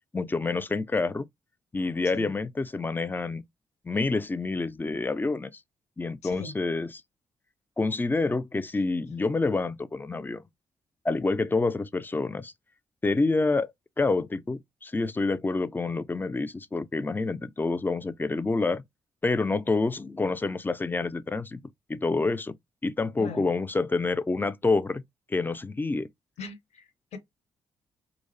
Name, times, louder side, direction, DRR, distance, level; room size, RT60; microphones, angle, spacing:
voice 1, 0.1-1.3 1.7-3.4 3.8-5.5 6.0-6.9 7.8-10.4 11.0-12.5 13.0-13.7 14.0-18.8 19.2-21.6 21.9-22.5 22.8-25.0 25.3-26.1, left 3 dB, 15° left, 0.3 m, -27 dB
voice 2, 6.2-6.6 23.2-23.5 26.4-27.2, left 4 dB, 65° left, 0.6 m, -41 dB
2.5 x 2.0 x 2.5 m
hypercardioid pair, 45°, 12 cm